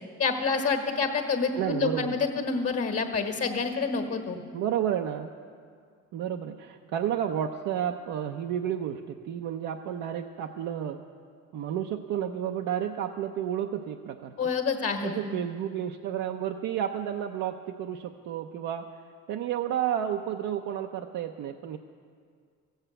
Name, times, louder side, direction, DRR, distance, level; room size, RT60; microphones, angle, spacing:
voice 1, 0.2-4.4 14.4-15.2, left 5 dB, 50° left, 4 dB, 1.6 m, -28 dB
voice 2, 1.6-2.2 4.5-5.3 6.1-11.0 11.5-14.3 15.0-18.8 19.3-21.8, right 10 dB, 90° right, 3 dB, 0.6 m, -31 dB
14.5 x 8.0 x 7.9 m, 2.1 s
cardioid pair, 90°, 30 cm